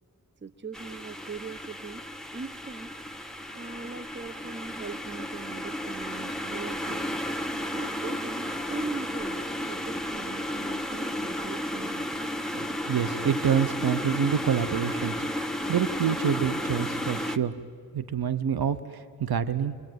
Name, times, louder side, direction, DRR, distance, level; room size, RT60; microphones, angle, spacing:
voice 1, 0.4-2.0 2.3-2.9 3.5-7.1 7.7-12.1, right 4 dB, 30° right, 11 dB, 0.8 m, -40 dB
sound 1, 0.7-17.4, left 1 dB, ahead, 1.2 m, -33 dB
voice 2, 12.5-15.1 15.4-17.5 17.9-19.8, right 8 dB, 75° right, 12 dB, 0.8 m, -27 dB
28.5 x 21.5 x 9.3 m, 2.2 s
cardioid pair, 50°, 37 cm